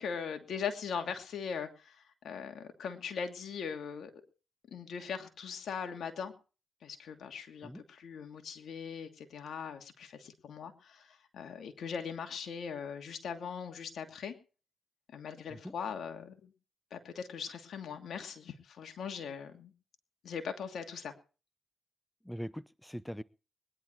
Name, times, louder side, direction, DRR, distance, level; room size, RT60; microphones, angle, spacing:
voice 1, 0.0-2.0 2.2-4.1 4.7-6.3 6.8-14.3 15.1-16.5 16.9-19.7 20.2-21.1, left 6 dB, 75° left, 6 dB, 2.6 m, -40 dB
voice 2, 22.2-23.2, equal, 5° left, 18 dB, 0.7 m, -42 dB
21.0 x 11.0 x 4.6 m, 0.36 s
cardioid pair, 60°, 0 cm